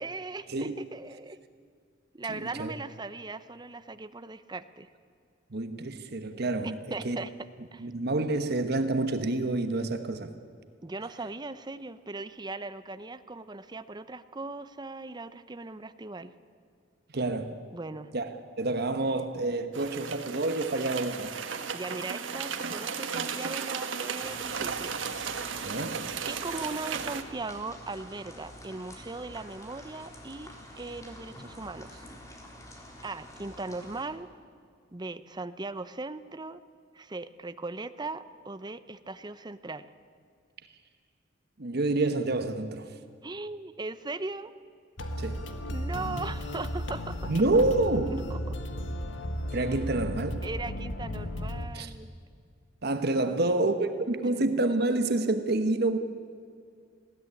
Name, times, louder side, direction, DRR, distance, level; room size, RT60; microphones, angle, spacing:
voice 1, 0.0-1.4 2.1-4.9 6.6-7.3 7.7-7.9 10.8-16.3 17.7-18.1 21.7-25.0 26.3-32.1 33.0-34.3 34.9-36.6 36.9-39.9 43.2-44.5 45.7-47.3 48.0-48.6 50.4-52.1 53.2-53.9, right 3 dB, 25° right, 13 dB, 0.7 m, -39 dB
voice 2, 2.4-2.7 5.5-6.8 7.0-7.2 7.8-10.3 17.1-17.5 18.1-18.3 18.6-21.4 25.6-26.1 41.6-42.9 45.2-45.4 47.3-48.1 49.5-50.4 51.7-51.9 52.8-56.0, right 2 dB, 60° right, 8 dB, 1.2 m, -28 dB
sound 1, 19.7-27.2, right 6 dB, 90° right, 1.4 m, -35 dB
sound 2, 24.2-34.0, left 1 dB, 15° left, 3.6 m, -47 dB
sound 3, 45.0-51.7, left 1 dB, 75° left, 1.6 m, -34 dB
20.0 x 16.5 x 9.8 m, 2.3 s
head